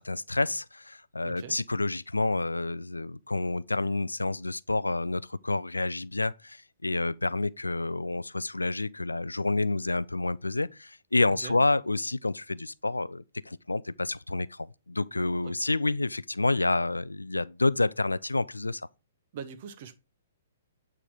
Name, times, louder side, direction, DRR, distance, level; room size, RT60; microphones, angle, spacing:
voice 1, 0.0-18.8, left 2 dB, 80° left, 0.3 m, -29 dB
voice 2, 1.2-1.6 11.3-11.6 15.4-15.5 19.3-20.0, right 7 dB, 45° right, 0.9 m, -42 dB
8.5 x 3.8 x 4.7 m
figure-of-eight pair, 115°, 0 cm